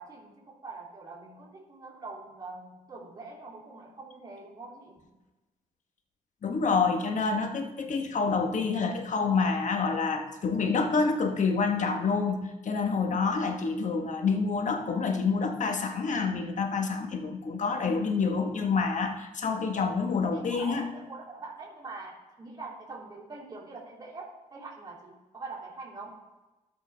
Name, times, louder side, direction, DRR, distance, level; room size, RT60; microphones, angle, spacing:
voice 1, 0.0-5.2 20.3-26.2, right 3 dB, 25° right, -6 dB, 3.1 m, -44 dB
voice 2, 6.4-20.9, left 4 dB, 55° left, 5 dB, 1.4 m, -27 dB
13.0 x 6.2 x 3.5 m, 1.1 s
supercardioid pair, 55°, 15 cm